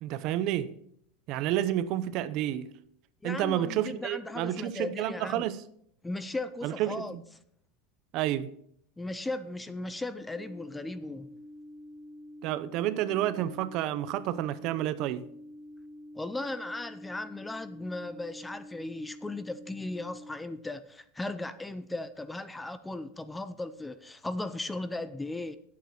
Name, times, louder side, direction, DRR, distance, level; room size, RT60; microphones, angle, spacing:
voice 1, 0.0-0.7 1.3-2.7 3.2-5.6 6.6-7.2 8.1-8.5 12.4-15.2, right 12 dB, 45° right, 0.7 m, -30 dB
voice 2, 3.2-5.4 6.0-7.2 9.0-11.3 16.2-25.6, left 2 dB, 5° left, 0.5 m, -37 dB
sound 1, 10.3-20.3, left 1 dB, 35° left, 3.9 m, -48 dB
9.9 x 8.4 x 5.9 m
supercardioid pair, 150°, 0 cm